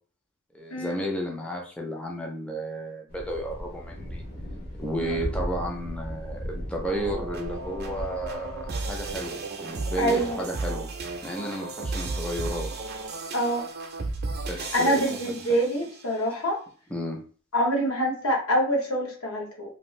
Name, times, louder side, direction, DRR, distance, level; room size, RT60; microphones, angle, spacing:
voice 1, 0.5-4.2 4.7-10.9 11.2-12.7 14.5-15.2 16.9-17.2, equal, 5° left, 0 dB, 0.5 m, -33 dB
Thunder, 3.1-9.2, equal, 50° left, 0.8 m, -36 dB
sound 1, 6.8-16.1, right 3 dB, 50° right, 0.5 m, -34 dB
voice 2, 10.0-10.4 13.3-13.7 14.7-16.6 17.5-19.8, equal, 75° left, 0 dB, 0.9 m, -25 dB
2.5 x 2.4 x 3.1 m, 0.41 s
head